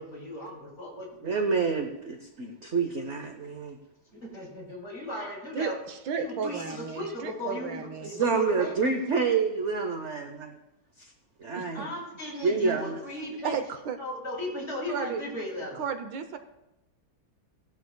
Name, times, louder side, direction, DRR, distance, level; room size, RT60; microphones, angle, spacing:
voice 1, 0.0-1.3 2.8-2.9 4.1-5.8 6.2-8.7 11.7-13.6 14.0-15.8, left 1 dB, 35° left, -5 dB, 5.5 m, -36 dB
voice 2, 1.2-3.8 8.2-10.6 11.0-11.1 11.4-11.9 12.4-13.0, right 4 dB, 50° right, 5 dB, 0.9 m, -28 dB
voice 3, 5.5-8.1 11.5-11.9 13.4-14.0 14.9-15.2 15.7-16.4, right 6 dB, 75° right, 8 dB, 1.5 m, -34 dB
18.5 x 12.0 x 2.2 m, 0.91 s
omnidirectional pair, 2.1 m